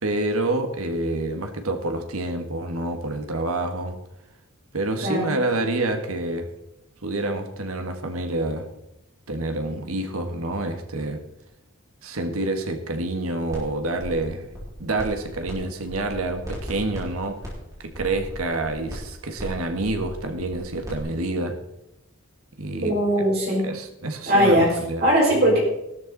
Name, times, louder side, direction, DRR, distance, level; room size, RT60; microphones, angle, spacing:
voice 1, 0.0-4.0 4.7-6.5 7.0-8.7 9.3-11.2 12.0-14.5 14.8-17.4 17.8-21.6 22.6-22.9 23.6-25.0 25.5-25.6, right 2 dB, 85° right, 6 dB, 1.7 m, -27 dB
voice 2, 5.0-5.3 22.8-23.6 24.3-25.6, equal, 45° right, -3 dB, 5.6 m, -20 dB
sound 1, 13.5-13.6 13.9-15.5 15.8-21.0, equal, 15° right, 5.0 m, -37 dB
14.5 x 12.5 x 4.1 m, 0.88 s
head